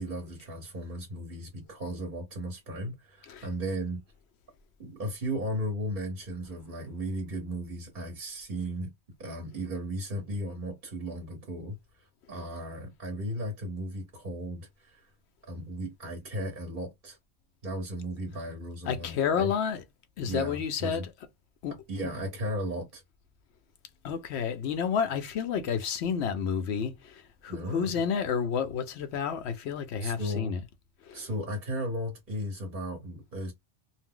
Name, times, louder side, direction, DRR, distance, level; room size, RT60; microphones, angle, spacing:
voice 1, 0.0-4.0 4.8-8.9 9.2-15.1 15.5-17.2 17.6-19.5 20.2-21.0 21.7-23.0 27.5-27.9 30.0-30.5 31.1-33.5, equal, 45° right, 1.1 m, -35 dB
voice 2, 18.9-19.8 20.2-21.1 21.6-21.7 24.0-30.6 31.0-31.3, left 7 dB, 70° left, 0.8 m, -30 dB
2.5 x 2.0 x 3.6 m
omnidirectional pair, 1.2 m